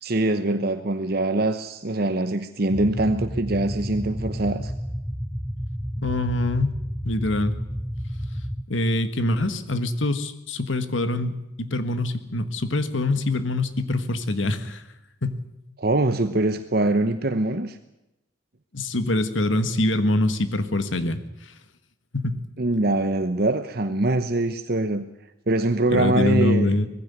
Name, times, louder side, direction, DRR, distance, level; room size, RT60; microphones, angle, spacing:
voice 1, 0.0-4.7 15.8-17.8 22.6-25.1 25.5-26.7, right 2 dB, 50° right, 9 dB, 1.0 m, -23 dB
sound 1, 2.7-8.7, equal, ahead, 0.7 m, -31 dB
voice 2, 6.0-6.7 7.0-7.5 8.7-14.8 15.2-15.4 18.7-21.2 22.1-22.4 25.9-26.9, left 1 dB, 80° left, 10 dB, 1.7 m, -24 dB
20.0 x 16.0 x 9.4 m, 0.91 s
head